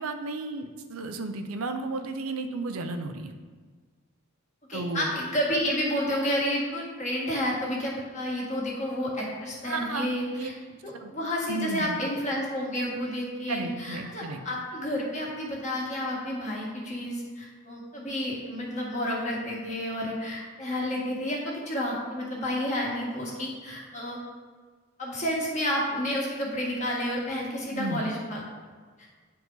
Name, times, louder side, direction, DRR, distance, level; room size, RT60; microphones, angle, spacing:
voice 1, 0.0-3.3 4.7-5.1 9.6-10.1 10.4-10.5 11.0-11.1 11.5-12.0 13.5-14.4 27.7-28.1, right 3 dB, 85° right, 7 dB, 0.6 m, -33 dB
voice 2, 4.7-10.5 10.8-24.2 25.0-28.5, equal, 35° left, -3 dB, 1.7 m, -30 dB
9.3 x 4.7 x 3.9 m, 1.5 s
head